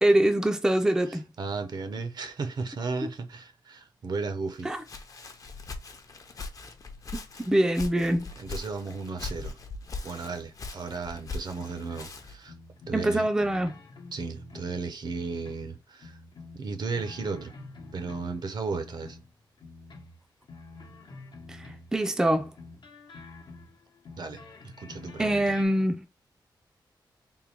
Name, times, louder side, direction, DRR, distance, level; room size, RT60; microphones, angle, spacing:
voice 1, 0.0-1.3 4.6-4.8 7.4-8.3 12.9-13.7 21.5-22.4 25.2-26.0, right 1 dB, 5° right, 0.4 m, -24 dB
voice 2, 1.1-4.7 8.4-9.6 10.0-12.5 12.9-13.3 14.1-16.2 16.5-17.5 17.9-19.2 24.2-25.6, right 4 dB, 60° right, 0.7 m, -35 dB
Walk footsteps, 4.5-12.5, left 3 dB, 45° left, 0.6 m, -41 dB
sound 1, 11.1-12.2 12.4-14.8 15.1-15.7 16.0-18.4 18.7-22.0 22.2-25.6, left 3 dB, 75° left, 0.9 m, -47 dB
3.6 x 2.2 x 4.4 m
wide cardioid pair, 150°, 8 cm